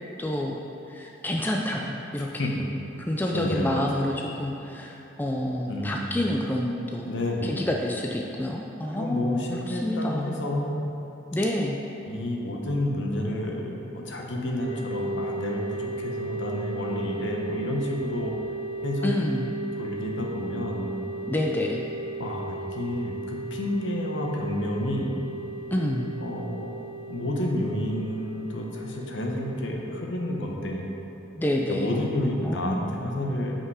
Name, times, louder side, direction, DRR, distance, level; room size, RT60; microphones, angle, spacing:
voice 1, 0.2-0.6 0.9-1.9 2.1-2.5 3.1-7.1 7.4-10.3 11.3-11.8 19.0-19.5 21.3-21.8 25.7-26.1 31.4-32.0 32.4-32.9, left 1 dB, 10° left, 0 dB, 0.3 m, -28 dB
voice 2, 3.3-4.1 5.7-6.1 7.0-7.6 9.0-10.8 12.0-18.3 18.8-19.1 19.8-21.0 22.2-25.1 26.2-26.7 27.1-30.8 31.7-33.5, left 1 dB, 75° left, 0 dB, 0.9 m, -30 dB
sound 1, 14.6-32.0, right 2 dB, 5° right, 0.9 m, -36 dB
5.8 x 5.4 x 4.7 m, 2.9 s
head